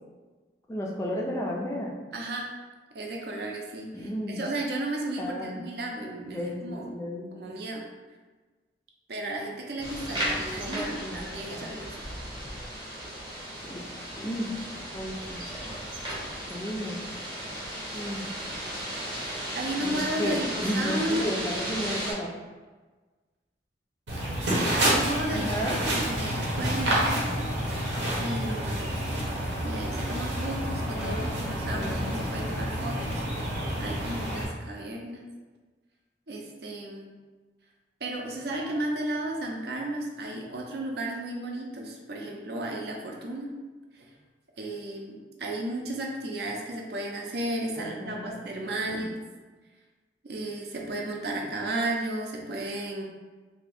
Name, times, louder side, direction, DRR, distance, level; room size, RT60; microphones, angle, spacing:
voice 1, 0.7-1.9 3.9-4.4 5.2-5.6 6.3-7.6 10.5-11.7 13.6-13.8 14.2-14.5 14.9-15.5 16.5-17.0 17.9-18.3 19.8-22.3 25.3-25.8 31.0-31.3 31.7-32.1 47.8-48.4 48.9-49.1, equal, 15° left, -2 dB, 0.3 m, -33 dB
voice 2, 2.1-2.5 2.9-6.9 7.3-7.9 9.1-12.1 19.5-21.3 24.5-25.5 25.8-27.4 28.2-29.0 29.6-33.2 33.8-35.2 36.3-37.1 38.0-43.5 43.9-44.1 44.6-49.2 50.2-53.0, right 1 dB, 60° right, 0 dB, 0.5 m, -34 dB
sound 1, 9.8-22.1, equal, 25° right, 0.8 m, -35 dB
sound 2, 24.1-34.5, right 1 dB, 80° right, 0.8 m, -29 dB
2.8 x 2.5 x 3.4 m, 1.3 s
head